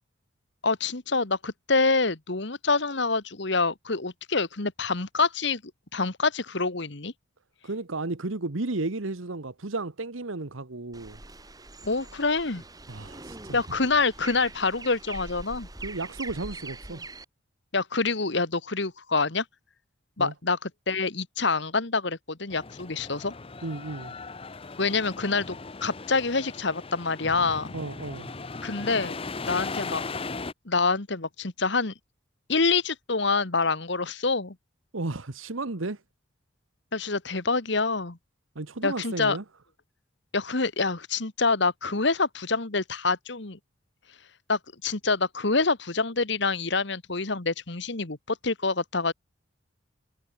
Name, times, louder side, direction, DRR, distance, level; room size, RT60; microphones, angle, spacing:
voice 1, 0.6-5.6 5.9-7.1 11.8-12.6 13.5-15.7 17.7-19.4 20.2-23.3 24.8-27.7 28.6-29.2 29.4-30.0 30.6-31.9 32.5-34.5 36.9-38.2 38.8-39.4 40.3-43.6 44.5-49.1, left 3 dB, 60° left, 1.7 m, -26 dB
voice 2, 7.6-11.2 12.9-13.6 15.8-17.0 20.2-20.3 23.6-24.1 27.7-28.3 34.9-36.0 38.5-39.4, right 2 dB, 85° right, 1.4 m, -33 dB
sound 1, 10.9-17.2, right 2 dB, 20° right, 3.6 m, -43 dB
sound 2, 22.5-30.5, left 3 dB, 30° left, 0.8 m, -38 dB
head